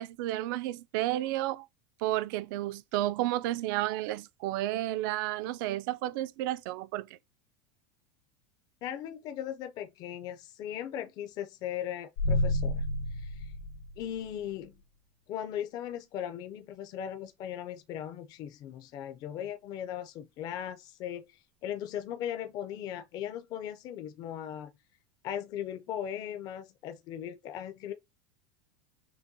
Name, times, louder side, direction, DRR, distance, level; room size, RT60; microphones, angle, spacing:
voice 1, 0.0-1.7 2.0-7.1, right 15 dB, 50° right, 0.3 m, -32 dB
voice 2, 8.8-12.8 13.1-13.5 14.0-14.8 15.3-24.7 25.2-27.9, left 10 dB, 30° left, 0.4 m, -38 dB
sound 1, 12.2-14.4, left 1 dB, 85° left, 0.9 m, -30 dB
6.0 x 2.2 x 2.7 m
supercardioid pair, 170°, 14 cm